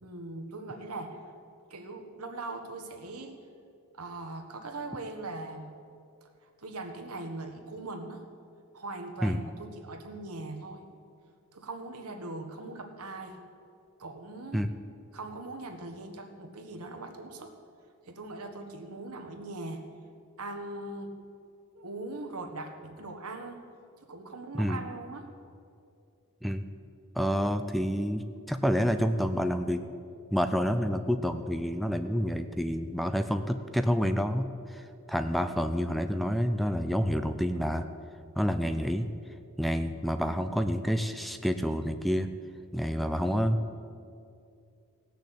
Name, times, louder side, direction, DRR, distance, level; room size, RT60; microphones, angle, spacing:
voice 1, 0.0-1.4 1.7-3.3 3.9-5.7 6.6-8.2 8.7-10.8 11.5-13.4 14.0-14.7 15.1-17.5 18.1-19.8 20.4-21.1 21.7-23.6 24.1-25.3, right 2 dB, 85° right, 4 dB, 1.5 m, -40 dB
voice 2, 27.2-29.8 30.3-34.8 35.1-37.9 38.4-39.1 39.6-42.3 42.7-43.6, equal, ahead, 8 dB, 0.5 m, -28 dB
17.0 x 6.7 x 8.4 m, 2.5 s
head